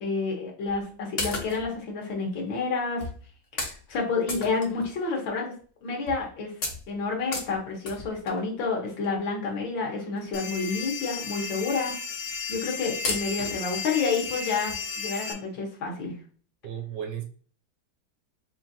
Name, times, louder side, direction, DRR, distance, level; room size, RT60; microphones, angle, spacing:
voice 1, 0.0-3.1 3.9-5.6 5.8-6.5 6.9-11.9 12.5-16.2, left 4 dB, 70° left, 1.9 m, -29 dB
sound 1, 0.7-0.8 1.2-1.8 2.5-2.6 3.0-3.2 3.6-3.8 4.3-5.2 5.6-5.7 6.1-6.3 6.6-8.5 9.5-9.6 10.2-10.3 10.5-10.7 11.1-11.2 11.4-11.5 12.3-12.6 13.0-13.7 14.2-14.3 14.7-14.8, left 2 dB, 40° left, 1.0 m, -34 dB
sound 2, 10.3-15.3, left 6 dB, 85° left, 1.7 m, -34 dB
voice 2, 16.6-17.2, right 9 dB, 75° right, 1.2 m, -34 dB
5.6 x 2.5 x 2.7 m
omnidirectional pair, 2.2 m